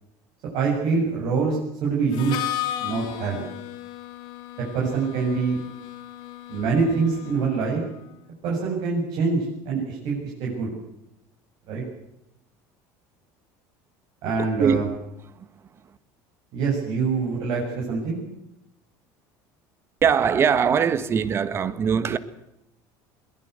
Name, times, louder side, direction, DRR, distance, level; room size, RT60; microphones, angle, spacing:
voice 1, 0.5-2.4 2.8-3.4 4.7-5.6 6.5-7.8 8.4-10.7 11.7-11.8 14.2-14.9 16.5-18.2, right 4 dB, 60° right, 7.5 m, -25 dB
Harmonica, 2.1-7.9, left 13 dB, 60° left, 3.1 m, -35 dB
voice 2, 14.4-15.0 15.3-15.5 20.0-22.2, right 7 dB, 30° right, 1.6 m, -22 dB
22.0 x 20.5 x 8.1 m
cardioid pair, 145°, 8 cm